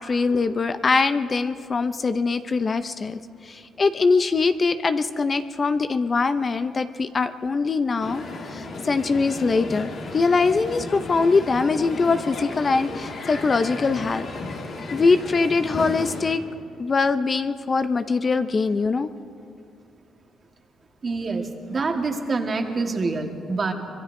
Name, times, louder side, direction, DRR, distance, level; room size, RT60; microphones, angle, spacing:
voice 1, 0.0-3.2 3.5-8.2 8.5-14.3 14.9-16.4 16.8-19.1, left 4 dB, 35° left, 10 dB, 0.5 m, -22 dB
Crowd, 8.0-16.3, left 3 dB, 60° left, 1.9 m, -34 dB
voice 2, 21.0-23.7, right 3 dB, 40° right, 4 dB, 1.5 m, -26 dB
25.0 x 22.0 x 2.6 m, 2.4 s
cardioid pair, 90°, 0 cm